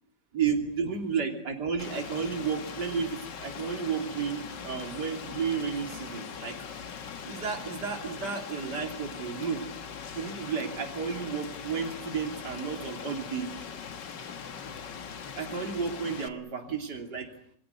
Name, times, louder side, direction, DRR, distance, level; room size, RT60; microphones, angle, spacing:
voice 1, 0.3-6.6 7.3-9.6 10.2-13.5 15.4-17.3, right 6 dB, 65° right, 3 dB, 3.6 m, -32 dB
Rain, 1.8-16.3, left 6 dB, 75° left, 2.1 m, -41 dB
28.5 x 22.0 x 8.0 m, 0.63 s
omnidirectional pair, 1.9 m